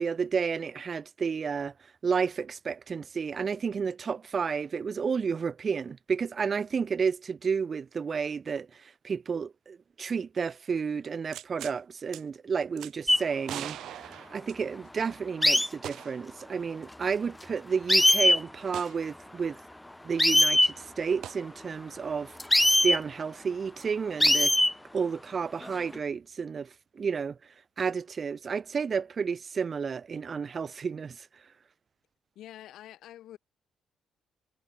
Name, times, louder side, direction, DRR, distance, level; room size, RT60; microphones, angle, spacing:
voice 1, 0.0-1.7 2.0-19.6 20.0-22.3 22.8-24.5 24.9-26.7 27.0-27.4 27.8-31.3, right 6 dB, 40° right, 2.7 m, -31 dB
sound 1, 11.3-11.8 12.1-12.2 12.8-12.9 13.4-15.0 15.8-16.3 16.6-16.7 18.7-19.0 21.2-21.4 24.3-24.4, right 12 dB, 80° right, 2.8 m, -41 dB
sound 2, 13.1-13.2 15.4-15.7 17.4-17.5 17.9-18.4 20.2-20.7 22.4-23.0 24.2-24.7 25.6-26.0, left 1 dB, 10° left, 1.3 m, -21 dB
voice 2, 32.3-33.4, left 13 dB, 80° left, 6.0 m, -46 dB
cardioid pair, 90°, 0 cm